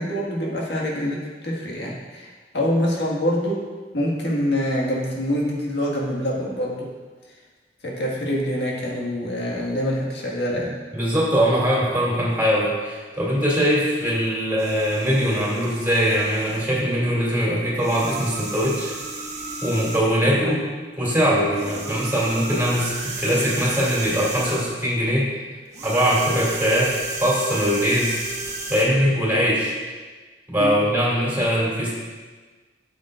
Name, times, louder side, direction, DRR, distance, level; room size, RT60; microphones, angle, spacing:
voice 1, 0.0-3.7 3.9-6.9 7.8-10.8 20.4-20.6 30.6-30.8, equal, 80° left, -3 dB, 1.8 m, -25 dB
voice 2, 10.9-18.9 19.6-20.6 21.0-25.3 25.8-28.2 28.7-29.7 30.5-31.9, equal, 10° right, -6 dB, 2.7 m, -21 dB
sound 1, 14.6-16.7 17.8-20.2 21.5-24.8 25.7-28.9, right 3 dB, 40° right, 1.1 m, -33 dB
12.0 x 7.2 x 2.5 m, 1.4 s
head